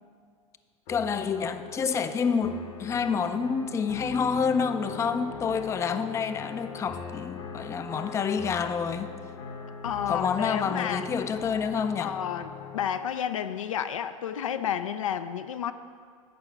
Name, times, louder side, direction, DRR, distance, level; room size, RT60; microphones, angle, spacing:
sound 1, 0.9-12.9, left 6 dB, 55° left, 1.2 m, -41 dB
voice 1, 0.9-9.1 10.1-12.2, left 6 dB, 15° left, 10 dB, 0.4 m, -28 dB
voice 2, 9.8-11.0 12.0-15.7, left 9 dB, 75° left, 10 dB, 0.5 m, -31 dB
9.3 x 5.5 x 5.8 m, 2.1 s
figure-of-eight pair, 90°, 17 cm